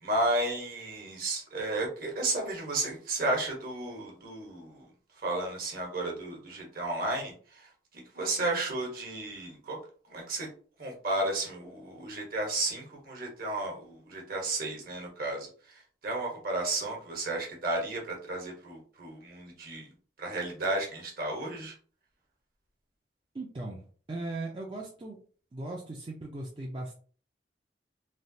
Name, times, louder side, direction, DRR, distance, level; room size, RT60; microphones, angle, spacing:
voice 1, 0.0-4.8 5.2-9.8 10.1-10.5 10.8-19.9 20.2-21.7, right 2 dB, 55° right, 0 dB, 1.1 m, -33 dB
voice 2, 23.3-25.2 25.5-26.9, right 2 dB, 30° right, -2 dB, 0.4 m, -38 dB
3.2 x 2.3 x 2.7 m, 0.43 s
head